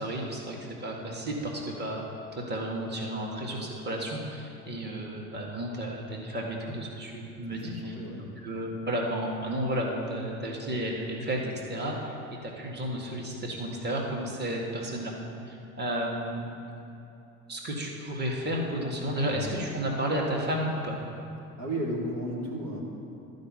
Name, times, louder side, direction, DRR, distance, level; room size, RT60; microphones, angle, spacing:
voice 1, 0.0-2.0 2.3-8.0 8.4-12.1 12.4-15.1 15.5-16.5 17.5-21.0, right 1 dB, 25° right, -1 dB, 1.8 m, -32 dB
voice 2, 7.4-8.3 19.3-19.6 21.6-22.8, right 1 dB, 80° right, -5 dB, 2.5 m, -34 dB
11.5 x 5.3 x 7.4 m, 2.8 s
hypercardioid pair, 65°, 42 cm